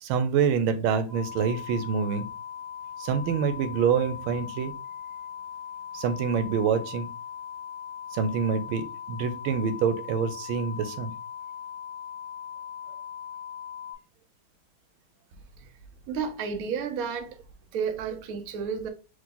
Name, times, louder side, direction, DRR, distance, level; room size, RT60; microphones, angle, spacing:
voice 1, 0.0-2.3 3.0-4.7 5.9-7.1 8.1-11.1, right 6 dB, 90° right, 1.5 m, -26 dB
sound 1, 1.1-13.9, left 8 dB, 65° left, 0.6 m, -40 dB
voice 2, 16.1-17.4 17.7-18.9, right 6 dB, 65° right, 0.9 m, -31 dB
3.7 x 2.9 x 3.8 m
omnidirectional pair, 2.2 m